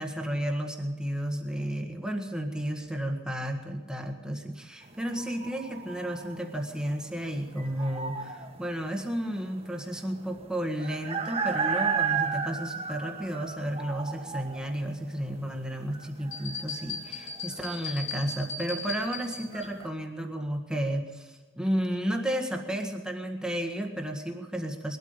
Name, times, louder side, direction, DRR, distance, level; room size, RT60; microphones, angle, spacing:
voice 1, 0.0-25.0, equal, 5° right, 3 dB, 1.6 m, -32 dB
sound 1, 4.8-19.9, right 6 dB, 25° right, 1.4 m, -35 dB
sound 2, 16.3-19.7, left 4 dB, 65° left, 7.2 m, -37 dB
21.0 x 13.0 x 5.2 m, 1.4 s
head